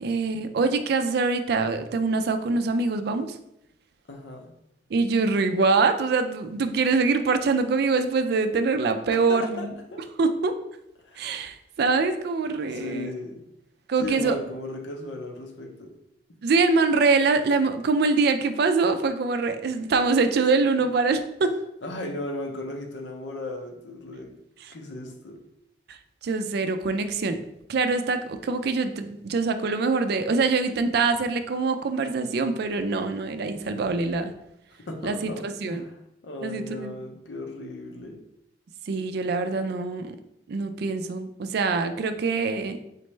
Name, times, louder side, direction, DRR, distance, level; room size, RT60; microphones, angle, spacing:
voice 1, 0.0-3.3 4.9-9.7 10.2-10.5 11.2-13.1 13.9-14.4 16.4-21.5 24.7-24.8 25.9-26.0 26.2-27.4 27.7-34.3 35.0-35.8 36.4-37.0 38.9-40.2 40.5-42.8, right 4 dB, 60° right, 8 dB, 0.4 m, -24 dB
voice 2, 4.1-4.5 9.1-10.0 11.0-11.4 12.7-13.4 14.0-15.9 21.8-24.3 24.7-25.4 34.7-38.2, left 1 dB, 90° left, 4 dB, 0.7 m, -36 dB
4.0 x 3.2 x 3.2 m, 0.82 s
head